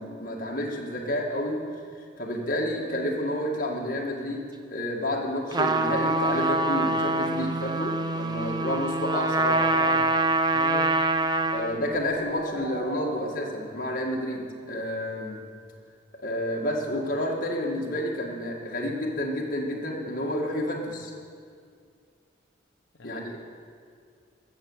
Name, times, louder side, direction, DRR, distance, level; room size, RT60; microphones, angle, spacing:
voice 1, 0.0-1.6 2.2-9.9 11.5-15.4 16.2-21.1 23.0-23.4, left 1 dB, 45° left, -1 dB, 1.9 m, -30 dB
Trumpet, 5.5-11.8, right 2 dB, 20° right, 0.5 m, -25 dB
voice 2, 9.7-10.1 10.5-10.9 22.9-23.2, left 3 dB, 85° left, 2 dB, 1.0 m, -38 dB
sound 1, 10.0-15.4, right 2 dB, 85° right, 2.0 m, -45 dB
14.0 x 7.4 x 7.3 m, 2.2 s
head